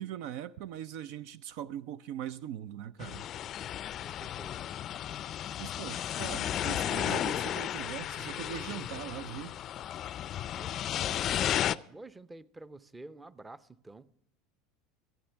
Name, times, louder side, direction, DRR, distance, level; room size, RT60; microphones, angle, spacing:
voice 1, 0.0-3.3 5.6-9.6, right 11 dB, 65° right, 0.4 m, -41 dB
sound 1, 3.0-11.7, left 11 dB, 45° left, 0.4 m, -34 dB
voice 2, 4.0-4.8 10.5-14.2, right 2 dB, 15° right, 0.6 m, -49 dB
25.5 x 8.9 x 3.4 m
hypercardioid pair, 85°, 0 cm